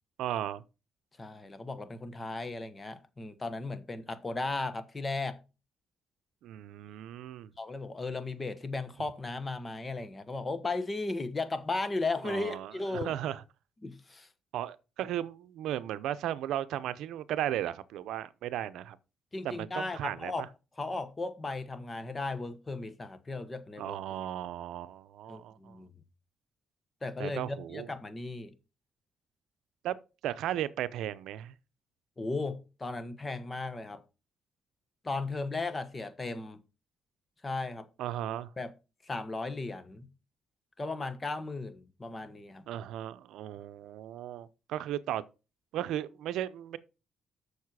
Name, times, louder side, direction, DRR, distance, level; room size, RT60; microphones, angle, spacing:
voice 1, 0.2-0.6 6.4-7.5 12.2-13.4 14.5-19.0 19.4-20.5 23.8-25.8 27.2-27.9 29.8-30.0 30.2-31.6 38.0-38.5 42.7-45.2 45.7-46.8, right 12 dB, 85° right, 0.6 m, -35 dB
voice 2, 1.2-5.4 7.6-13.1 13.8-14.3 19.3-20.5 20.8-24.0 25.3-25.9 27.0-28.5 32.2-34.0 35.0-36.6 37.4-37.9 38.6-38.7 39.0-40.1 40.8-42.7, left 3 dB, 25° left, 1.2 m, -36 dB
7.2 x 6.6 x 4.7 m
cardioid pair, 90°, 0 cm